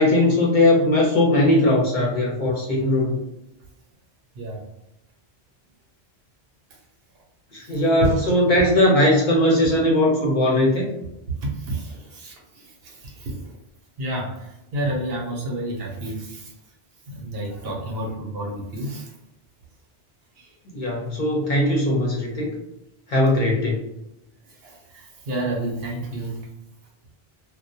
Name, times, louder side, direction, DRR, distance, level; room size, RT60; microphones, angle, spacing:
voice 1, 0.0-3.2 7.5-10.9 20.7-22.5 23.1-23.8, left 1 dB, 50° left, -3 dB, 0.7 m, -19 dB
voice 2, 7.7-8.2 11.3-13.5 14.0-16.5 17.1-19.1 20.4-20.5 24.5-26.5, right 1 dB, 70° right, -1 dB, 0.9 m, -30 dB
2.2 x 2.2 x 2.6 m, 0.86 s
omnidirectional pair, 1.1 m